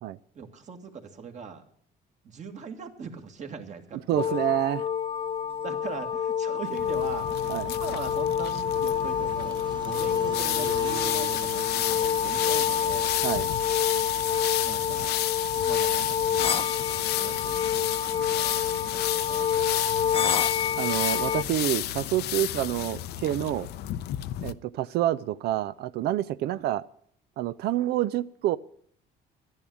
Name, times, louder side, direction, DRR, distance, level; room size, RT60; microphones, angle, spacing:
voice 1, 0.3-1.6 2.2-4.8 5.6-13.1 14.6-15.2 15.6-20.5 26.5-26.6, right 5 dB, 45° right, 5 dB, 2.0 m, -41 dB
sound 1, 3.9-21.8, right 4 dB, 25° right, 1.3 m, -47 dB
voice 2, 4.1-4.8 7.5-7.7 13.2-13.5 20.8-23.7 24.4-26.8 27.4-28.6, right 13 dB, 75° right, 16 dB, 0.5 m, -27 dB
sound 2, 4.2-21.4, left 8 dB, 35° left, 0.7 m, -28 dB
sound 3, 6.7-24.5, left 14 dB, 75° left, 0.6 m, -32 dB
11.5 x 10.5 x 8.4 m, 0.62 s
cardioid pair, 110°, 17 cm